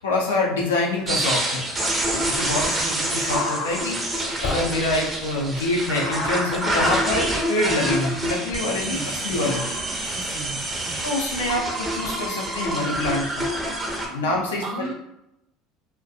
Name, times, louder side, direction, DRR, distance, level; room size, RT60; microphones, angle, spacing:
voice 1, 0.0-1.6 2.3-4.0 4.4-9.6 11.0-13.5 14.1-14.9, left 2 dB, 90° left, -1 dB, 0.5 m, -26 dB
sound 1, 1.0-14.4, left 2 dB, 60° left, 0.8 m, -39 dB
sound 2, 1.1-14.1, right 1 dB, 25° right, 0.6 m, -27 dB
voice 2, 2.7-3.1 8.7-9.4 10.1-11.0 14.6-14.9, right 3 dB, 55° right, -1 dB, 0.8 m, -36 dB
sound 3, 4.4-5.9, left 2 dB, 25° left, 0.4 m, -34 dB
2.3 x 2.2 x 2.6 m, 0.86 s
hypercardioid pair, 80°, 0 cm